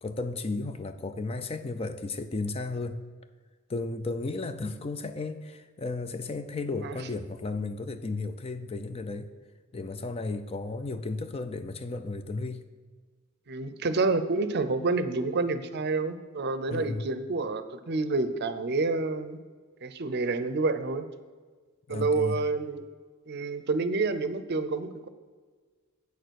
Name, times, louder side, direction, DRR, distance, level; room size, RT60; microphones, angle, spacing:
voice 1, 0.0-3.0 3.7-9.3 9.7-12.7 16.7-17.1 21.9-22.4, left 3 dB, 30° left, 10 dB, 0.4 m, -34 dB
voice 2, 13.5-19.4 19.8-21.1 21.9-22.8 23.3-25.1, right 3 dB, 50° right, 11 dB, 0.6 m, -28 dB
8.5 x 6.7 x 6.3 m, 1.5 s
head